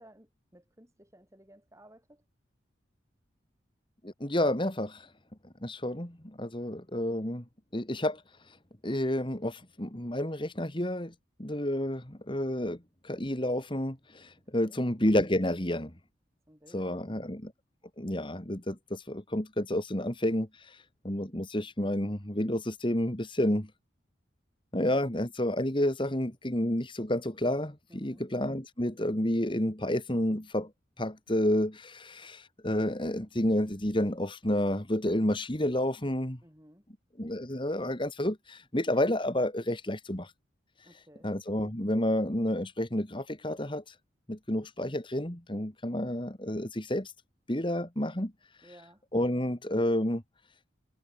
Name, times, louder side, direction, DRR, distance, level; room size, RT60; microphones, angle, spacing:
voice 1, 0.0-2.2 14.5-14.8 16.5-17.4 27.9-28.2 36.4-36.9 40.8-41.3 48.6-49.0, right 1 dB, 15° right, 7.9 m, -57 dB
voice 2, 4.0-5.1 5.6-7.4 7.7-8.2 8.5-8.6 8.8-11.1 11.4-12.8 13.0-15.9 16.7-17.5 18.0-23.7 24.7-30.7 31.0-36.4 37.2-40.3 41.2-43.9 44.3-47.1 47.5-48.3 49.1-50.2, left 1 dB, 25° left, 2.4 m, -30 dB
head